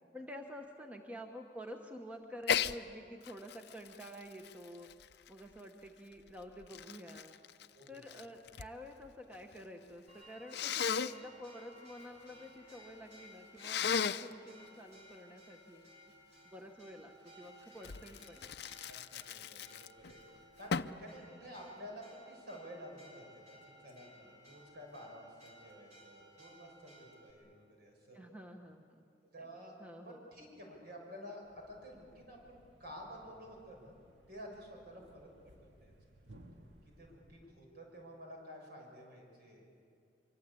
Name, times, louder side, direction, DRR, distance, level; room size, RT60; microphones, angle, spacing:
voice 1, 0.1-4.9 5.3-7.3 7.9-15.9 16.4-18.5 28.1-29.0 29.8-30.3, equal, 10° right, 3 dB, 1.2 m, -49 dB
Sneeze, 2.4-2.8 3.2-5.6 6.3-8.7 9.0-9.6 10.5-11.1 13.6-14.3 17.8-20.1 20.7-21.0, left 7 dB, 65° left, 0.6 m, -36 dB
voice 2, 7.7-8.2 18.9-28.2 29.2-29.7 30.0-34.0 34.3-35.3 35.6-35.9 37.0-39.6, equal, 60° right, 0 dB, 6.6 m, -51 dB
Church bell, 10.1-27.3, equal, 40° right, 3.7 m, -59 dB
Thump thud, 31.4-37.6, right 1 dB, 85° right, 2.1 m, -61 dB
24.5 x 24.0 x 8.5 m, 2.4 s
head